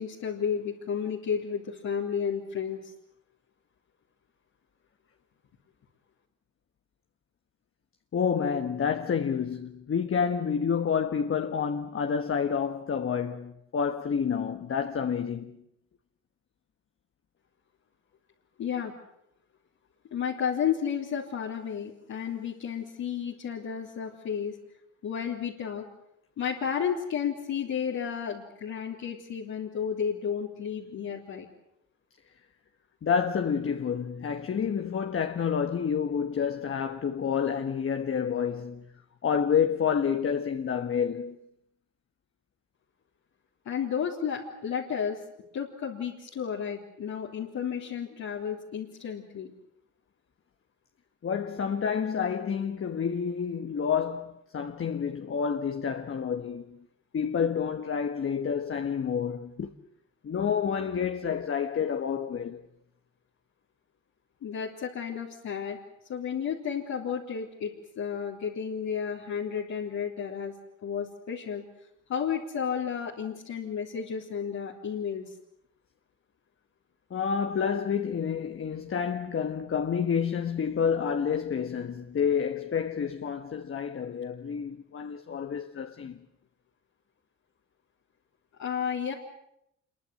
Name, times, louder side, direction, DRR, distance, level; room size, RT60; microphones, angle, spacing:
voice 1, 0.0-2.9 18.6-18.9 20.1-24.5 25.0-25.8 26.4-31.5 43.7-45.2 45.5-49.5 64.4-65.8 66.1-70.5 70.8-71.6 72.1-75.4 88.6-89.1, left 7 dB, 70° left, 3.7 m, -32 dB
voice 2, 8.1-15.6 33.0-38.9 39.2-41.4 51.2-56.8 57.1-59.7 60.2-62.6 77.1-86.2, left 7 dB, 45° left, 1.5 m, -29 dB
26.5 x 23.5 x 7.8 m
cardioid pair, 90°, 30 cm